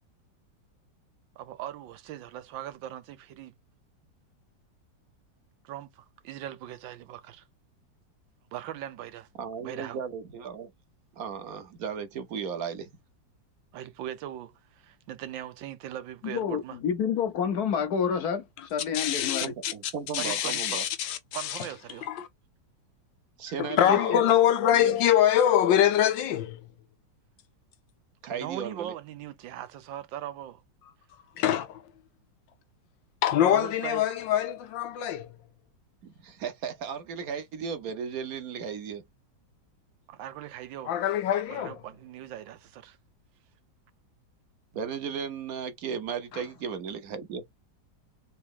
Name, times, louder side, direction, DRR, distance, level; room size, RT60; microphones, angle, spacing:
voice 1, 1.4-3.5 5.6-7.5 8.5-9.3 9.6-10.0 13.7-16.8 20.2-20.8 21.3-22.1 28.3-30.6 33.4-34.1 40.1-41.0 41.5-43.0, right 12 dB, 90° right, 1.5 m, -40 dB
voice 2, 9.4-10.7 11.2-12.9 19.4-20.8 23.4-24.3 24.7-25.0 28.2-28.9 36.0-39.0 44.7-47.4, right 7 dB, 60° right, 1.1 m, -35 dB
voice 3, 16.2-19.5 23.9-24.2, left 7 dB, 65° left, 1.2 m, -29 dB
voice 4, 18.9-19.7 20.1-21.6 22.1-22.3 23.6-26.6 31.4-31.8 33.2-35.3 40.9-41.7, left 11 dB, 90° left, 1.5 m, -24 dB
4.1 x 2.9 x 3.6 m
omnidirectional pair, 2.0 m